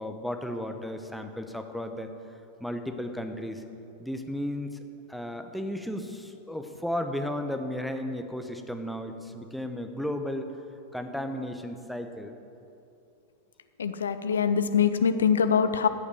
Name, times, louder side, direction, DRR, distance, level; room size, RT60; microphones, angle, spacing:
voice 1, 0.0-2.1 2.6-3.6 4.0-4.8 5.1-10.5 10.9-12.3, left 1 dB, ahead, 5 dB, 1.0 m, -34 dB
voice 2, 13.8-15.9, left 7 dB, 70° left, 11 dB, 0.7 m, -23 dB
14.5 x 8.4 x 6.8 m, 2.7 s
figure-of-eight pair, 90°, 0 cm